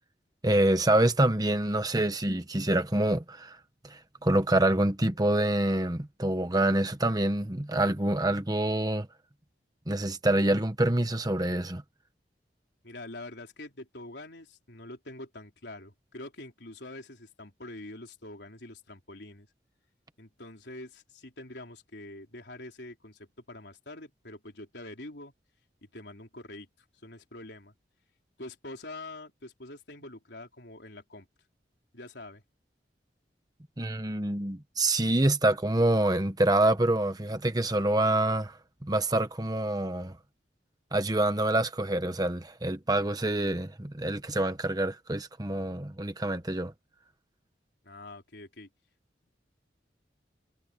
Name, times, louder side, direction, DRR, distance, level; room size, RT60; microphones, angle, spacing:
voice 1, 0.4-3.6 3.8-9.1 9.9-11.8 33.8-40.1 40.9-46.7, right 1 dB, 20° right, 1.1 m, -26 dB
voice 2, 12.8-19.5 20.2-25.3 25.8-26.7 27.0-27.7 28.4-31.3 31.9-32.4 47.8-48.7, left 2 dB, 70° left, 3.9 m, -45 dB
head